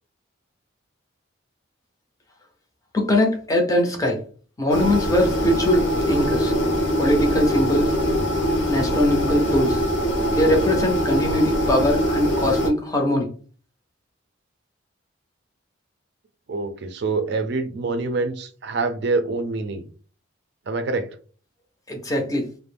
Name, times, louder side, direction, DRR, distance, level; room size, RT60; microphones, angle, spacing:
voice 1, 2.9-4.2 4.6-6.5 7.0-7.9 8.7-9.8 10.3-13.3 21.9-22.5, left 1 dB, 15° left, 2 dB, 0.5 m, -21 dB
sound 1, 4.7-12.7, equal, 60° left, 0.6 m, -22 dB
voice 2, 16.5-19.9 20.7-21.1, right 3 dB, 55° right, 7 dB, 0.4 m, -25 dB
2.4 x 2.0 x 3.2 m, 0.41 s
head